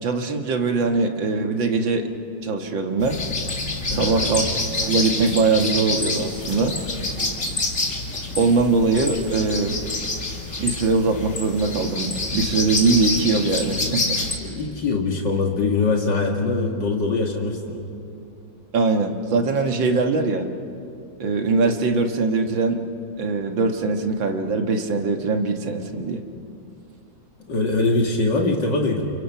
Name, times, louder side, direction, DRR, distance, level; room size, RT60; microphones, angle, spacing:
voice 1, 0.0-2.1 2.4-3.2 3.9-4.5 4.8-6.8 8.4-9.8 10.6-14.2 18.7-20.5 21.2-22.8 23.2-26.2, right 4 dB, 80° right, 4 dB, 2.3 m, -22 dB
sound 1, 3.0-14.4, left 2 dB, 40° left, 2.8 m, -27 dB
voice 2, 3.9-4.4 14.4-17.8 27.5-29.0, left 3 dB, 70° left, 1 dB, 2.6 m, -23 dB
29.5 x 29.5 x 5.8 m, 2.6 s
omnidirectional pair, 2.0 m